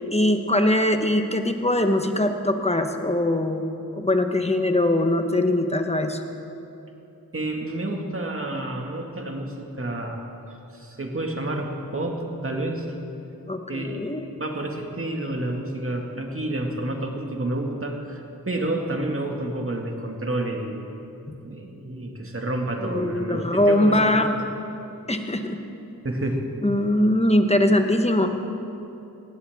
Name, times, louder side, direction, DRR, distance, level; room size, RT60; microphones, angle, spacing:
voice 1, 0.1-3.7 4.0-6.2 13.5-14.3 21.3-21.4 22.8-24.4 25.1-25.6 26.6-28.3, left 1 dB, 15° left, 6 dB, 1.2 m, -22 dB
voice 2, 7.3-10.2 10.7-12.9 13.7-14.0 14.3-20.9 21.4-24.3 26.0-26.5, right 1 dB, 35° right, 2 dB, 2.1 m, -29 dB
18.0 x 15.5 x 3.6 m, 2.8 s
cardioid pair, 50°, 37 cm